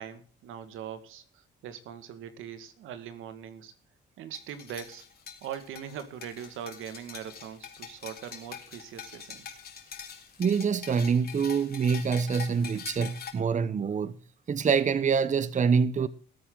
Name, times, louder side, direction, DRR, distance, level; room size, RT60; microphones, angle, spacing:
voice 1, 0.0-3.7 4.2-5.1 5.4-9.6, right 9 dB, 85° right, 2.0 m, -41 dB
sound 1, 4.3-13.3, left 7 dB, 50° left, 3.6 m, -44 dB
voice 2, 10.4-14.1 14.5-16.1, right 6 dB, 40° right, 0.9 m, -25 dB
19.5 x 8.4 x 3.9 m
cardioid pair, 90°, 20 cm